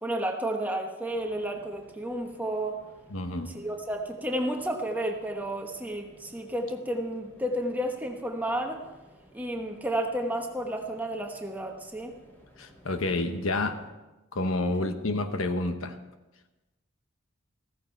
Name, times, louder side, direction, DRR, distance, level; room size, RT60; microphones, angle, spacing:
voice 1, 0.0-2.8 3.5-8.8 9.3-12.1, right 1 dB, 10° right, 2 dB, 1.1 m, -31 dB
sound 1, 1.1-13.9, equal, 10° left, 3.1 m, -57 dB
voice 2, 3.1-3.5 12.6-13.8 14.3-16.0, left 2 dB, 75° left, 8 dB, 1.1 m, -29 dB
15.0 x 14.5 x 4.6 m, 1.1 s
head